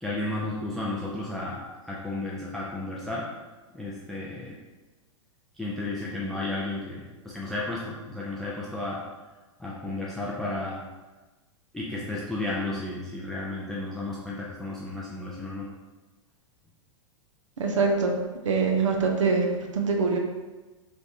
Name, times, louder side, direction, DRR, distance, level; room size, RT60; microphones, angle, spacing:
voice 1, 0.0-3.3 3.7-4.6 5.5-9.0 9.6-10.8 11.7-15.7, left 2 dB, ahead, -5 dB, 0.4 m, -33 dB
voice 2, 17.6-18.2 18.4-20.2, right 4 dB, 70° right, 2 dB, 0.6 m, -24 dB
3.2 x 3.2 x 2.7 m, 1.2 s
figure-of-eight pair, 100°, 17 cm